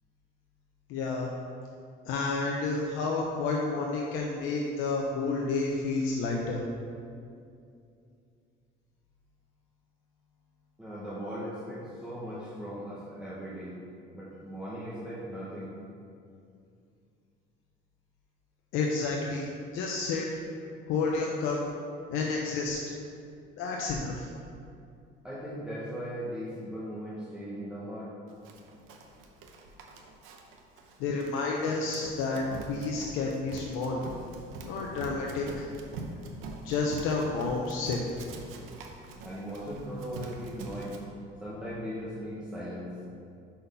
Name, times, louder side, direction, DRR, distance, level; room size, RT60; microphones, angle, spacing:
voice 1, 0.9-1.3 2.1-6.6 18.7-19.5 19.7-20.3 20.9-21.6 22.1-22.8 23.6-24.3 31.0-34.0 34.6-35.7 36.6-38.0, left 3 dB, 80° left, -1 dB, 0.7 m, -30 dB
voice 2, 10.8-13.8 14.1-15.7 25.2-28.1 39.2-41.0 41.4-42.9, equal, 5° right, -9 dB, 1.0 m, -38 dB
Run, 28.4-41.0, right 3 dB, 80° right, 0.8 m, -44 dB
5.7 x 4.3 x 5.4 m, 2.5 s
cardioid pair, 140°, 21 cm